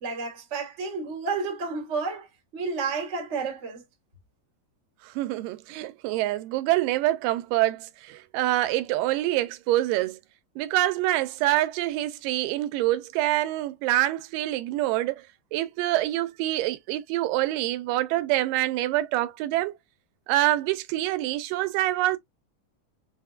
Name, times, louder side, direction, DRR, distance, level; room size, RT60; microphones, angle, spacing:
voice 1, 0.0-2.3 2.5-3.8, right 4 dB, 65° right, 0.7 m, -31 dB
voice 2, 5.2-10.2 10.6-15.2 15.5-19.7 20.3-22.2, right 15 dB, 85° right, 2.2 m, -26 dB
6.2 x 2.1 x 2.4 m
omnidirectional pair, 3.8 m